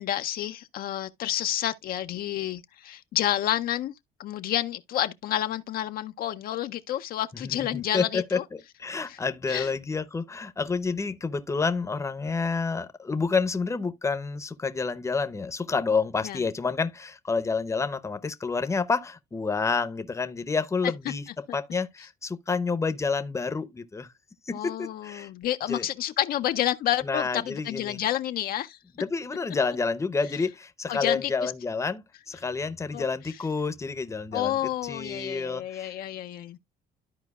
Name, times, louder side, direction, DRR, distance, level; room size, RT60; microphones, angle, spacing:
voice 1, 0.0-3.9 4.2-8.4 9.1-9.2 9.5-9.7 16.2-16.4 24.5-28.8 30.9-31.5 32.9-33.0 34.3-36.6, left 12 dB, 60° left, 0.5 m, -29 dB
voice 2, 7.3-24.1 24.5-25.3 25.7-25.9 27.0-28.0 29.0-35.9, left 4 dB, 15° left, 0.7 m, -29 dB
13.0 x 4.5 x 2.3 m
cardioid pair, 110°, 17 cm